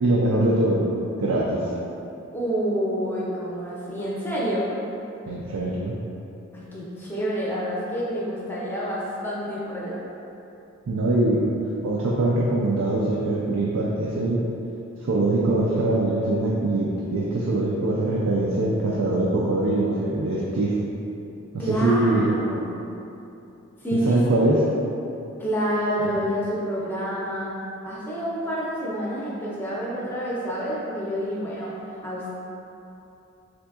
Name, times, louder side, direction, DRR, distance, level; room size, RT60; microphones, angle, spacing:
voice 1, 0.0-0.8 1.2-1.6 5.3-6.0 10.9-11.5 11.8-14.5 15.0-20.8 21.5-22.3 23.9-24.6, right 2 dB, 80° right, -4 dB, 0.4 m, -23 dB
voice 2, 2.3-4.7 6.5-10.0 21.6-22.8 23.8-24.6 25.4-27.5 27.8-31.7 32.0-32.3, equal, 10° left, -7 dB, 0.6 m, -28 dB
3.8 x 3.4 x 2.3 m, 2.8 s
head